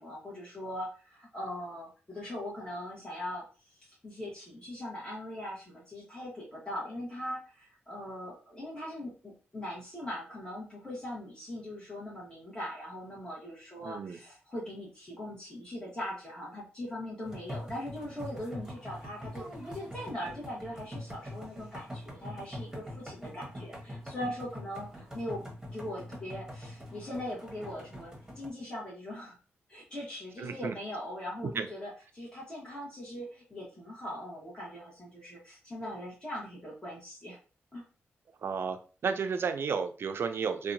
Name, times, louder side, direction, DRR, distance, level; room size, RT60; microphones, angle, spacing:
voice 1, 0.0-25.4 25.7-29.4 29.7-37.4 37.7-37.8, left 1 dB, 20° left, -6 dB, 1.0 m, -40 dB
voice 2, 13.8-14.2 30.4-30.7 31.6-31.7 38.4-40.7, right 5 dB, 55° right, 8 dB, 0.4 m, -32 dB
sound 1, 17.2-28.5, equal, 10° right, 1.1 m, -44 dB
2.7 x 2.2 x 2.5 m, 0.36 s
cardioid pair, 70°, 5 cm